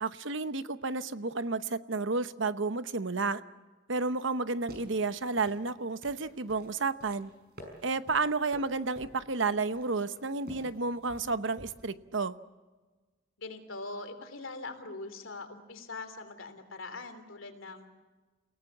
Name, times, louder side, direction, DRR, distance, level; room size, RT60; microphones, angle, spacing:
voice 1, 0.0-3.4 3.9-7.3 7.8-12.3, right 3 dB, 70° right, 12 dB, 0.9 m, -31 dB
sound 1, 4.4-12.0, equal, 50° right, 5.6 m, -51 dB
voice 2, 13.4-18.0, left 3 dB, 90° left, 8 dB, 3.1 m, -42 dB
29.0 x 18.0 x 7.4 m, 1.3 s
head